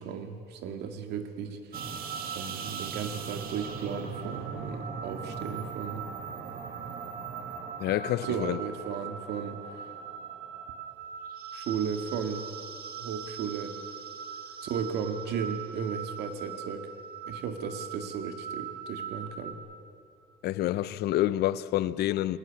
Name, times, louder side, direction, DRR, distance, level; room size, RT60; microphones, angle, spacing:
voice 1, 0.0-1.8 2.3-6.1 8.2-9.6 11.5-12.5 13.0-13.7 14.6-16.9 17.3-19.6, right 7 dB, 80° right, 2.1 m, -35 dB
sound 1, 1.7-19.5, right 6 dB, 60° right, 2.1 m, -40 dB
voice 2, 7.8-8.6 20.4-22.4, left 14 dB, 75° left, 0.7 m, -28 dB
21.5 x 19.0 x 8.7 m
cardioid pair, 110°, 17 cm